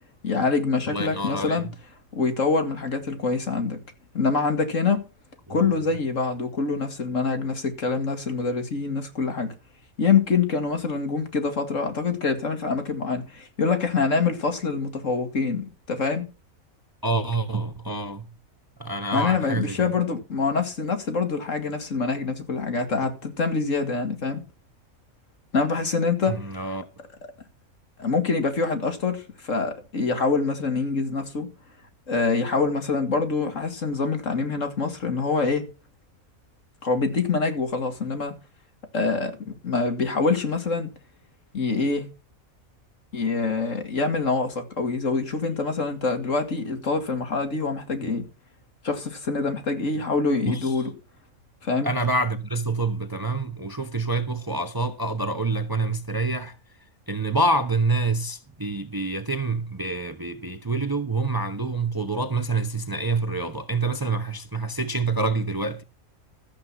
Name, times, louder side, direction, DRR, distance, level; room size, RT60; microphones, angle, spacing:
voice 1, 0.2-1.7 2.1-3.8 4.1-5.1 5.5-9.5 10.0-16.3 19.1-24.4 25.5-26.4 26.7-26.8 28.0-31.5 32.1-35.7 36.8-38.3 38.9-40.9 41.5-42.1 43.1-48.3 48.8-50.9 51.6-51.9, left 4 dB, 65° left, 2.6 m, -25 dB
voice 2, 0.9-1.6 17.0-18.3 18.8-19.9 26.3-26.8 50.5-50.6 51.8-56.5 57.1-65.8, right 3 dB, 20° right, 0.9 m, -27 dB
13.5 x 8.0 x 5.8 m
omnidirectional pair, 1.4 m